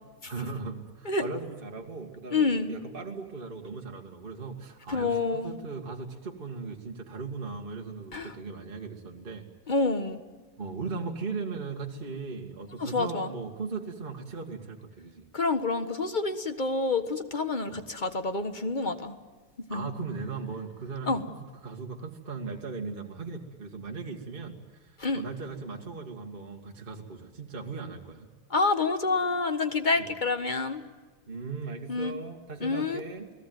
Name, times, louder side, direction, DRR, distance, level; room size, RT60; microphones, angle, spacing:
voice 1, 0.2-9.5 10.6-15.3 17.7-17.8 19.7-28.3 30.0-30.1 31.3-33.3, right 4 dB, 25° right, 1 dB, 2.0 m, -38 dB
voice 2, 2.3-2.7 4.9-5.5 8.1-8.3 9.7-10.2 12.8-13.3 15.3-19.2 19.7-19.9 21.1-21.2 25.0-25.2 28.5-30.8 31.9-32.2 32.6-33.0, left 3 dB, 25° left, 9 dB, 1.2 m, -28 dB
29.0 x 19.0 x 9.4 m, 1.4 s
omnidirectional pair, 2.4 m